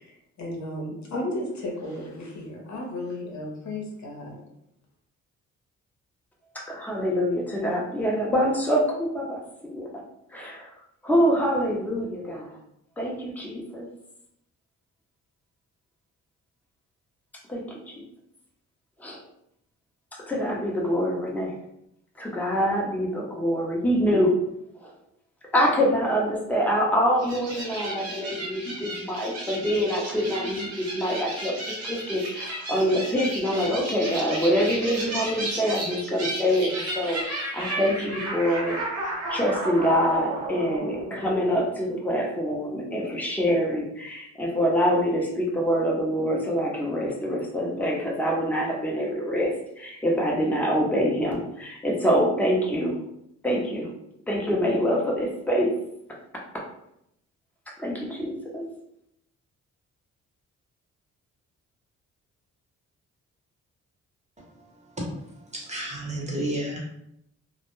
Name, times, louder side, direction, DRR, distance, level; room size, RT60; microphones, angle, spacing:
voice 1, 0.0-4.4, left 1 dB, 65° left, -1 dB, 0.8 m, -34 dB
voice 2, 6.7-9.8 10.3-10.7 11.0-12.6 13.0-13.9 17.5-17.9 19.0-19.2 20.3-21.5 22.2-24.4 24.8-24.9 25.5-31.6 31.8-38.8 39.3-53.0 53.4-53.9 54.3-55.7 57.8-58.6, equal, 5° left, -2 dB, 0.7 m, -25 dB
sound 1, 27.2-41.8, right 1 dB, 55° right, 0.9 m, -33 dB
voice 3, 65.5-66.8, right 1 dB, 20° right, -2 dB, 0.9 m, -30 dB
2.2 x 2.1 x 3.0 m, 0.78 s
cardioid pair, 70°, 31 cm